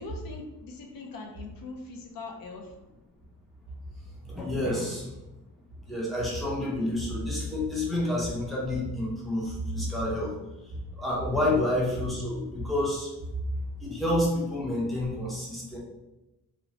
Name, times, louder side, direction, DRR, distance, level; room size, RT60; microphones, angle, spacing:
voice 1, 0.0-2.7 11.3-11.6, left 3 dB, 60° left, 2 dB, 0.5 m, -41 dB
voice 2, 4.2-5.1 5.9-10.4 10.7-13.1 13.8-15.8, left 1 dB, ahead, -5 dB, 0.5 m, -29 dB
2.8 x 2.0 x 2.7 m, 0.97 s
wide cardioid pair, 155°, 38 cm